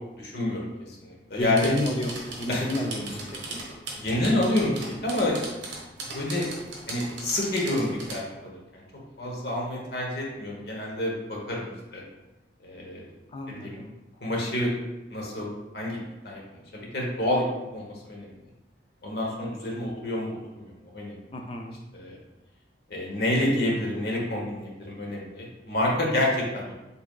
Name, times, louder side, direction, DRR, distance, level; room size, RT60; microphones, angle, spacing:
voice 1, 0.1-1.7 2.5-2.6 4.0-5.4 6.0-6.5 6.9-8.8 9.2-12.0 12.6-13.0 13.5-13.8 14.2-14.7 15.1-15.5 15.7-16.4 16.7-17.4 17.7-18.3 19.0-20.3 20.6-21.2 21.9-22.2 22.9-26.7, left 1 dB, 55° left, -2 dB, 1.0 m, -28 dB
voice 2, 1.3-3.6 9.2-9.4 13.3-13.9 21.3-21.8, left 1 dB, 30° left, 2 dB, 0.4 m, -31 dB
sound 1, 1.4-8.2, right 2 dB, 70° right, 1.1 m, -38 dB
4.7 x 3.4 x 2.3 m, 1.0 s
head